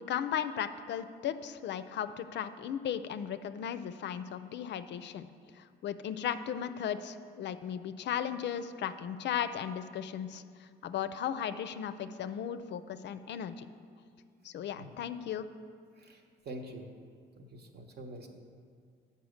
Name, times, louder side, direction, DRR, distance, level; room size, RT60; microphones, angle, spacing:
voice 1, 0.0-5.3 5.6-13.7 14.4-15.5, left 9 dB, 60° left, 12 dB, 0.4 m, -36 dB
voice 2, 16.0-16.9 17.4-18.3, right 1 dB, 55° right, 4 dB, 1.0 m, -46 dB
7.0 x 5.6 x 6.4 m, 2.1 s
cardioid pair, 90°, 20 cm